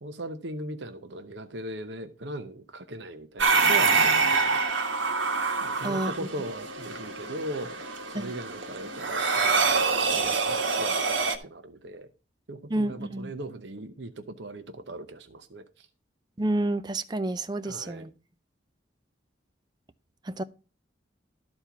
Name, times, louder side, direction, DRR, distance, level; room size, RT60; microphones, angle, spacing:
voice 1, 0.0-4.6 5.6-7.8 8.1-12.1 12.5-15.9 17.6-18.1, right 1 dB, 70° right, 0.8 m, -39 dB
sound 1, 3.4-11.4, right 4 dB, 85° right, 1.5 m, -26 dB
voice 2, 12.7-13.3 16.4-18.1 20.3-20.4, right 1 dB, 20° right, 0.5 m, -29 dB
13.0 x 4.4 x 5.7 m
head